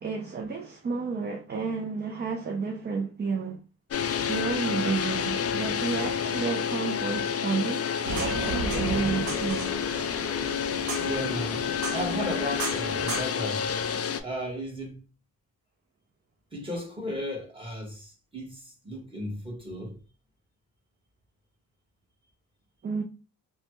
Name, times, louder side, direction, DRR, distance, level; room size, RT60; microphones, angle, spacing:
voice 1, 0.0-3.6 4.3-9.8 22.8-23.0, right 5 dB, 30° right, 0.5 m, -31 dB
sound 1, 3.9-14.2, left 8 dB, 45° left, 0.4 m, -29 dB
sound 2, 8.0-13.2, right 3 dB, 90° right, 0.8 m, -34 dB
voice 2, 10.9-13.7 14.2-15.0 16.5-20.0, equal, 15° right, 1.4 m, -35 dB
3.1 x 2.1 x 3.0 m
cardioid pair, 90°, 34 cm